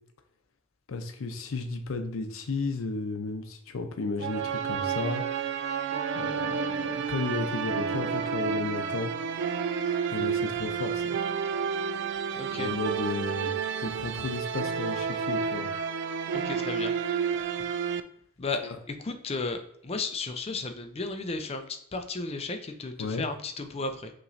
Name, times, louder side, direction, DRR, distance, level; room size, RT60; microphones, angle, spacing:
voice 1, 0.9-5.2 6.1-9.1 10.1-11.2 12.5-13.5 13.8-15.7 18.6-18.8 23.0-23.3, left 3 dB, 80° left, 6 dB, 0.6 m, -33 dB
sound 1, 4.2-18.0, right 6 dB, 60° right, 0.3 m, -30 dB
voice 2, 12.4-12.7 16.4-16.9 18.4-21.7 21.9-24.1, left 3 dB, 30° left, 7 dB, 0.5 m, -34 dB
5.6 x 3.0 x 2.6 m, 0.71 s
head